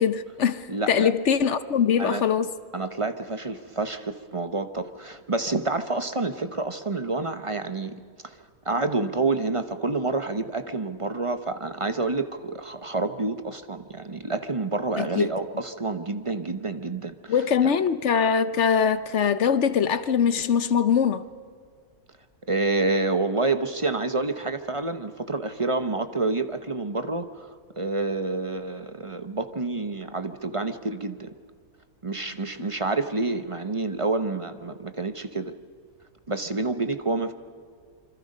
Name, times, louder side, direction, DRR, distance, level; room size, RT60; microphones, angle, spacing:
voice 1, 0.0-2.5 15.0-15.3 17.3-21.2, left 7 dB, 60° left, 1.0 m, -22 dB
voice 2, 0.7-1.1 2.0-2.2 2.7-8.4 8.6-17.3 22.5-31.3 32.0-35.5 36.3-37.3, right 3 dB, 25° right, 0.8 m, -28 dB
27.0 x 25.0 x 5.4 m
omnidirectional pair, 1.5 m